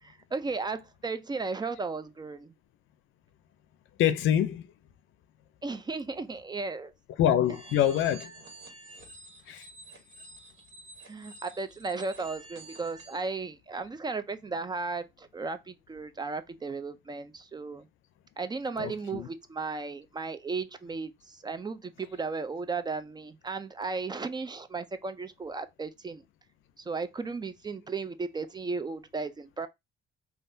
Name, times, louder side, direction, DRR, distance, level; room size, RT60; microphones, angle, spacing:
voice 1, 0.0-2.5 5.6-6.9 11.1-17.9 18.4-26.2 26.8-29.7, right 4 dB, 20° right, 0.3 m, -35 dB
voice 2, 4.0-4.7 7.2-8.3 9.5-9.7 18.8-19.3, left 10 dB, 80° left, 0.5 m, -25 dB
sound 1, 7.4-13.2, right 2 dB, 85° right, 1.3 m, -49 dB
3.4 x 2.4 x 2.6 m
cardioid pair, 90°, 20 cm